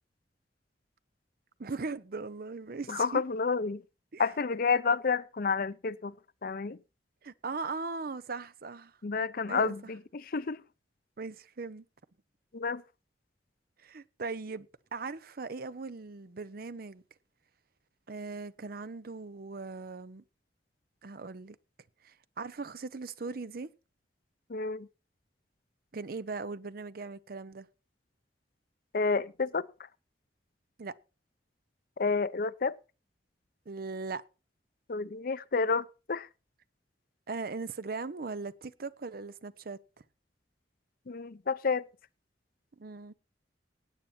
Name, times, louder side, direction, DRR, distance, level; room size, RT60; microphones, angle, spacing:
voice 1, 1.6-3.2 4.1-4.2 7.2-8.9 9.5-9.7 11.2-11.8 13.8-14.7 14.9-17.0 18.1-20.2 21.0-21.6 22.0-23.7 25.9-27.7 30.8-30.9 33.7-34.2 37.3-39.8 42.8-43.1, right 4 dB, 55° right, 0.6 m, -39 dB
voice 2, 2.9-3.8 4.2-6.1 6.4-6.8 9.0-10.6 12.5-12.8 24.5-24.9 28.9-29.6 32.0-32.8 34.9-36.3 41.1-41.8, left 4 dB, 55° left, 0.6 m, -30 dB
16.5 x 9.1 x 4.3 m
head